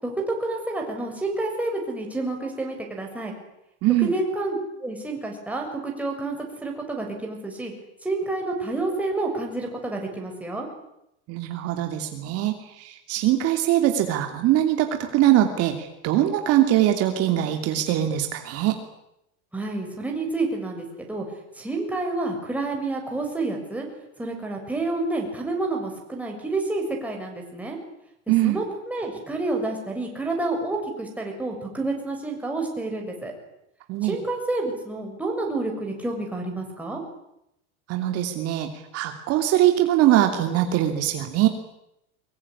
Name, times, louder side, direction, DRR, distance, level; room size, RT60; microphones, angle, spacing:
voice 1, 0.0-3.3 4.0-7.7 8.0-10.7 19.5-21.2 21.6-23.9 24.2-27.8 28.4-33.3 34.0-37.0, right 2 dB, 5° right, 1 dB, 6.9 m, -29 dB
voice 2, 3.8-4.1 11.3-18.8 28.3-28.6 33.9-34.2 37.9-41.5, right 13 dB, 50° right, 5 dB, 2.9 m, -22 dB
24.0 x 23.0 x 10.0 m, 0.82 s
cardioid pair, 155°, 31 cm